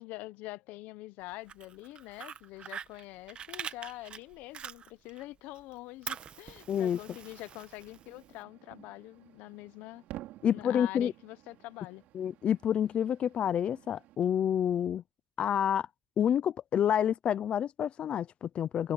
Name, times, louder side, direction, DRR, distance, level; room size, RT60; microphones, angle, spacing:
voice 1, 0.0-10.0 10.4-12.0, left 19 dB, 80° left, 0.8 m, -45 dB
Fire, 1.3-5.2 5.6-8.4, right 8 dB, 40° right, 1.1 m, -44 dB
voice 2, 6.7-7.0 10.4-11.1 12.1-15.0 15.4-15.9 16.2-18.9, left 9 dB, 45° left, 0.5 m, -28 dB
sound 1, 7.8-14.2, right 15 dB, 75° right, 5.2 m, -52 dB
cardioid pair, 125°, 3 cm